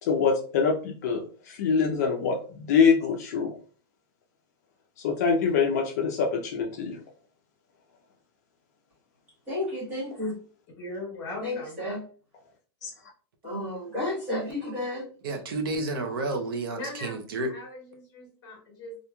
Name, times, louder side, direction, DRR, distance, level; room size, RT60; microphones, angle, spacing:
voice 1, 0.0-3.6 5.0-7.0 12.8-12.9, left 5 dB, 40° left, 0.4 m, -25 dB
voice 2, 9.5-10.3 11.4-12.0 13.4-15.1, left 1 dB, 15° right, 1.0 m, -31 dB
voice 3, 10.8-11.8 16.7-17.2 17.5-19.0, left 1 dB, 20° left, 1.2 m, -39 dB
voice 4, 15.2-17.5, right 2 dB, 55° right, 0.5 m, -30 dB
2.9 x 2.4 x 2.2 m
supercardioid pair, 180°, 14 cm